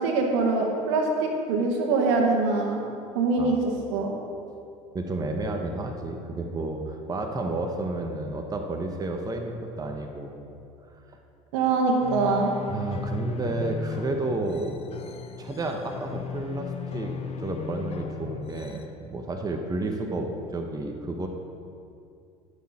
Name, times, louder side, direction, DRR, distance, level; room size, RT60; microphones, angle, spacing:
voice 1, 0.0-2.8 3.1-3.6 3.9-4.1 11.5-12.5, right 3 dB, 75° right, 1 dB, 1.6 m, -23 dB
voice 2, 4.9-10.4 10.8-11.2 12.7-14.7 15.4-17.1 17.4-21.3, right 2 dB, 25° right, 3 dB, 1.1 m, -31 dB
sound 1, 12.0-18.8, left 7 dB, 40° left, 0.8 m, -36 dB
14.5 x 6.5 x 4.3 m, 2.5 s
hypercardioid pair, 80°, 16 cm